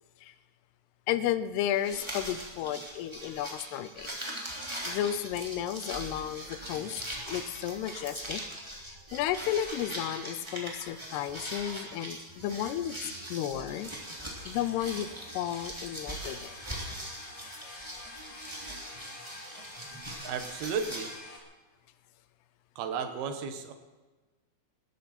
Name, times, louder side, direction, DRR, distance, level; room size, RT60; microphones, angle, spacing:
voice 1, 1.1-4.2 4.5-8.4 8.8-13.0 13.3-13.9 14.5-15.1 15.3-16.5, left 11 dB, 85° left, 13 dB, 2.8 m, -33 dB
sound 1, 1.7-21.1, right 1 dB, 10° right, 2.4 m, -41 dB
sound 2, 13.7-21.4, left 2 dB, 35° left, 2.9 m, -48 dB
voice 2, 20.2-21.1 22.8-23.7, right 6 dB, 75° right, 7 dB, 3.2 m, -34 dB
20.0 x 14.0 x 4.4 m, 1.2 s
omnidirectional pair, 4.6 m